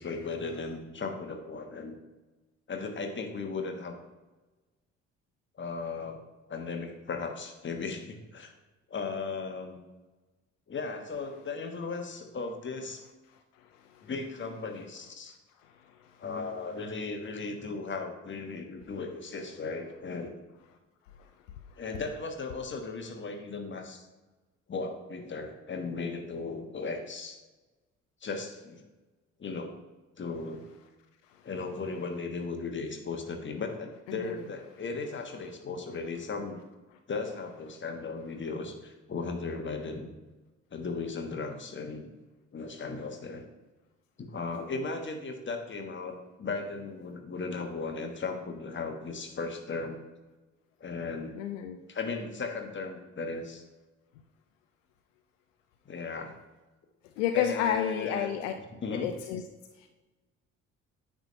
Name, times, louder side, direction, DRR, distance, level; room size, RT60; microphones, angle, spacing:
voice 1, 0.0-2.0 2.7-4.0 5.6-6.2 6.5-8.5 8.9-9.8 10.7-13.0 14.0-15.3 16.2-20.4 21.8-24.1 24.7-27.4 28.2-28.8 29.4-29.7 30.2-30.6 31.4-36.6 37.1-40.1 40.7-42.1 42.5-43.5 44.2-50.0 50.8-51.4 51.9-53.6 55.8-56.3 57.3-58.3 58.8-59.1, left 4 dB, 30° left, 4 dB, 1.3 m, -36 dB
voice 2, 51.4-51.8 57.2-58.5 58.9-59.4 59.8-59.9, left 9 dB, 70° left, 7 dB, 0.6 m, -30 dB
9.2 x 3.7 x 5.5 m, 1.2 s
figure-of-eight pair, 45°, 39 cm